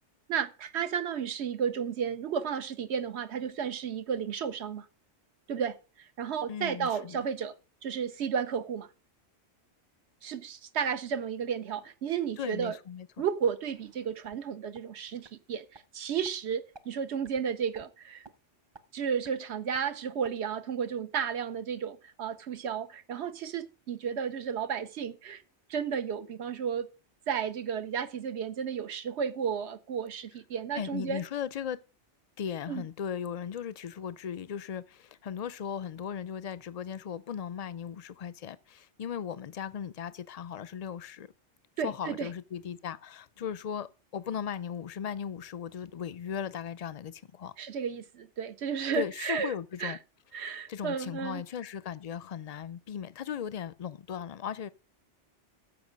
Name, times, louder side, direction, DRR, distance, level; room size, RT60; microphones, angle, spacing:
voice 1, 0.3-4.9 5.5-7.5 7.8-8.9 10.2-12.8 13.2-18.3 18.9-25.4 25.7-26.9 27.3-31.2 32.7-32.8 41.8-42.3 47.6-49.5 49.8-50.0 50.3-51.4, right 7 dB, 70° right, 1.0 m, -33 dB
voice 2, 6.5-7.2 12.4-13.1 30.7-31.8 32.4-41.3 41.8-47.5 48.9-50.0 50.7-54.7, left 8 dB, 50° left, 0.5 m, -37 dB
sound 1, 13.6-14.4 14.7-14.8 15.2-15.3 15.7-15.8 16.2-16.3 16.7-16.8 17.2-17.4 17.7-17.9 18.2-18.3 18.7-18.8 19.2-19.3 19.7-19.8 20.2-20.3, right 3 dB, 30° right, 0.6 m, -52 dB
14.0 x 5.3 x 5.2 m
omnidirectional pair, 1.2 m